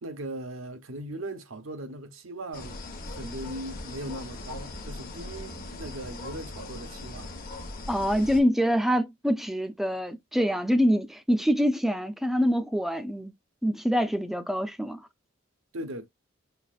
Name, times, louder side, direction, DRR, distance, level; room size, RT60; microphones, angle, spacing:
voice 1, 0.0-2.8 3.1-7.3 15.7-16.1, right 1 dB, 85° right, 0.9 m, -39 dB
sound 1, 2.5-8.4, left 2 dB, 45° left, 1.0 m, -40 dB
voice 2, 7.9-13.3 13.6-15.1, equal, ahead, 0.5 m, -25 dB
5.5 x 2.5 x 2.4 m
head